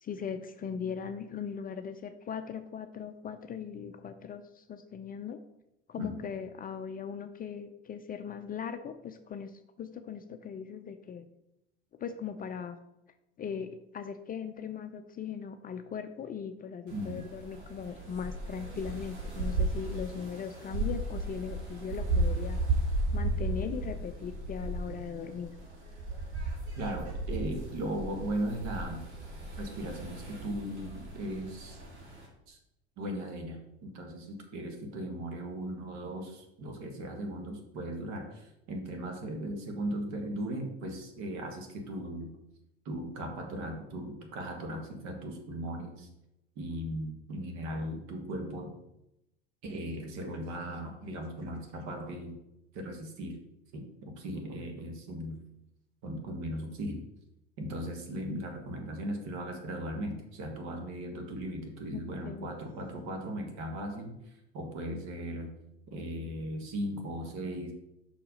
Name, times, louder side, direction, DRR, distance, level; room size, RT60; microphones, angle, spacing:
voice 1, 0.0-5.4 5.9-11.3 12.0-12.8 13.4-22.6 23.1-25.6 61.9-62.5, left 7 dB, 25° left, 8 dB, 0.5 m, -39 dB
voice 2, 16.9-17.2 26.8-29.0 29.6-31.8 32.5-32.6 33.0-42.3 42.9-46.1 46.6-48.8 49.6-52.4 52.7-53.4 53.7-55.4 56.0-57.0 57.6-65.5 65.9-67.7, right 1 dB, 55° right, 4 dB, 1.7 m, -37 dB
sound 1, 16.9-32.3, right 2 dB, 75° right, 2.1 m, -35 dB
5.6 x 4.7 x 5.1 m, 0.87 s
figure-of-eight pair, 70°, 33 cm